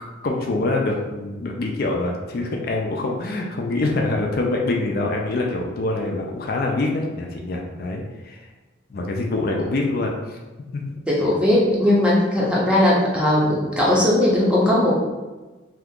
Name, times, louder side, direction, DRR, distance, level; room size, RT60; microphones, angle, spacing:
voice 1, 0.2-8.5 8.9-10.4 10.7-10.8, left 2 dB, 50° left, 0 dB, 0.4 m, -25 dB
voice 2, 11.1-15.0, left 1 dB, 5° right, -5 dB, 0.6 m, -18 dB
2.8 x 2.4 x 3.5 m, 1.2 s
head